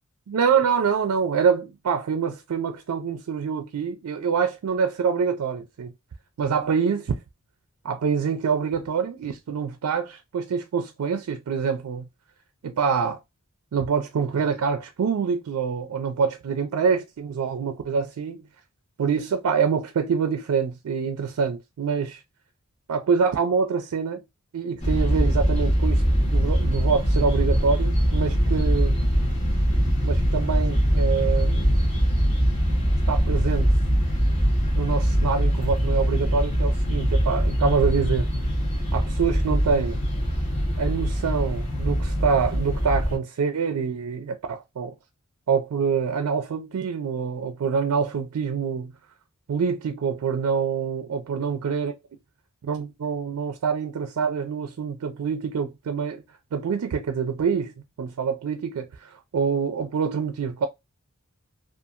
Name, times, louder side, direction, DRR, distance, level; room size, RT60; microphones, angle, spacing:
voice 1, 0.3-5.9 6.4-7.1 7.8-12.0 12.6-13.2 13.7-18.4 19.0-22.2 22.9-24.2 24.5-29.0 30.0-31.7 33.1-33.7 34.7-38.3 38.9-40.0 40.8-44.9 45.5-48.9 49.5-51.9 52.6-56.2 56.5-57.7 58.0-60.7, right 6 dB, 85° right, 0.4 m, -25 dB
sound 1, 24.8-43.2, equal, 30° left, 1.1 m, -22 dB
2.7 x 2.4 x 2.4 m
head